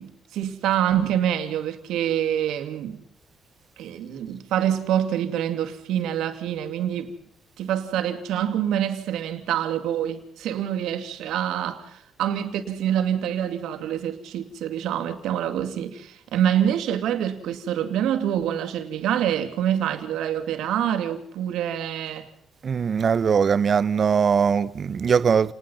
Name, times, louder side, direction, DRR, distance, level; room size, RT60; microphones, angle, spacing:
voice 1, 0.0-3.0 3.8-7.1 7.6-22.3, right 10 dB, 85° right, 2.5 m, -26 dB
voice 2, 22.6-25.5, right 6 dB, 50° right, 0.8 m, -21 dB
29.0 x 20.0 x 5.6 m
cardioid pair, 90°, 0 cm